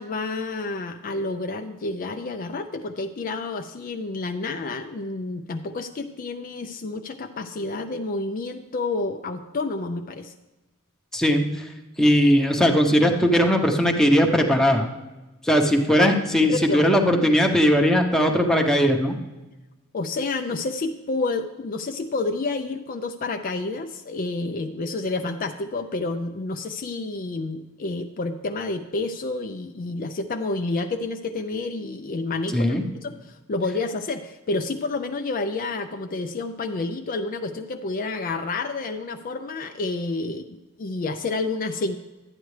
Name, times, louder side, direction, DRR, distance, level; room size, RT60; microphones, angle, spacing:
voice 1, 0.0-10.3 16.0-16.1 16.5-16.9 19.9-42.0, left 3 dB, 40° left, 6 dB, 0.4 m, -29 dB
voice 2, 11.1-11.5 12.0-14.9 15.4-19.2 32.5-32.8, equal, 5° left, 2 dB, 0.8 m, -19 dB
12.0 x 9.1 x 3.2 m, 1.1 s
head